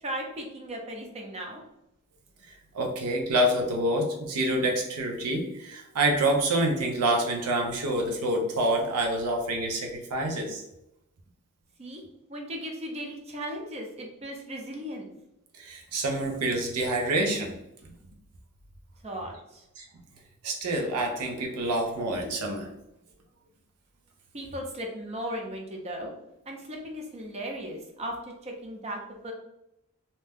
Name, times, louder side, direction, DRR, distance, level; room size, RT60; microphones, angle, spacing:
voice 1, 0.0-1.6 11.8-12.0 12.3-15.1 19.0-19.6 24.3-26.1 26.5-28.2 28.4-29.3, equal, 30° right, 1 dB, 0.5 m, -37 dB
voice 2, 2.5-10.6 15.5-17.6 19.8-19.9 20.4-22.7, right 1 dB, 90° right, 2 dB, 0.6 m, -27 dB
2.7 x 2.1 x 3.3 m, 0.86 s
head